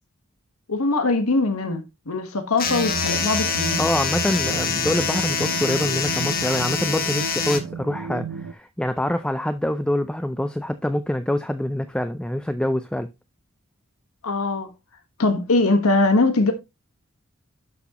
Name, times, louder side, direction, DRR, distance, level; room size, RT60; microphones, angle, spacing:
voice 1, 0.7-3.8 14.2-14.7 15.2-16.5, left 3 dB, 90° left, 1.3 m, -21 dB
sound 1, 2.6-7.6, left 6 dB, 45° left, 1.4 m, -25 dB
sound 2, 2.6-8.5, right 4 dB, 90° right, 0.6 m, -32 dB
voice 2, 3.8-13.1, left 1 dB, 5° left, 0.3 m, -25 dB
11.5 x 6.1 x 3.0 m
head